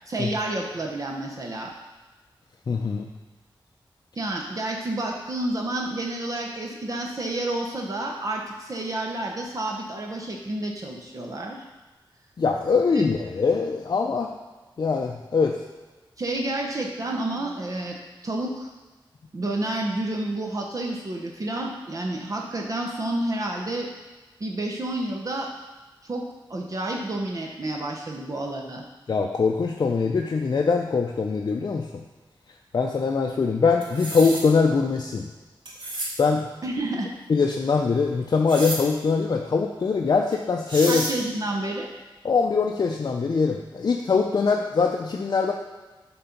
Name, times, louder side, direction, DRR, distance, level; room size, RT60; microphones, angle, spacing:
voice 1, 0.1-1.7 4.2-11.6 12.9-13.0 16.2-18.0 18.2-18.7 19.3-23.9 24.4-25.5 26.0-26.2 26.5-28.8 36.6-37.1 40.9-41.9, right 1 dB, 40° right, 0 dB, 0.8 m, -30 dB
voice 2, 2.7-3.1 12.4-14.3 14.8-15.5 29.1-31.9 32.7-35.3 36.2-36.5 37.3-41.1 42.2-45.5, left 4 dB, 50° left, 1 dB, 0.5 m, -22 dB
sound 1, 33.8-34.4 35.7-36.1 38.5-38.8 40.3-40.4 40.7-41.1, right 1 dB, 65° right, 1.7 m, -30 dB
7.7 x 3.9 x 5.8 m, 1.2 s
wide cardioid pair, 115°, 9 cm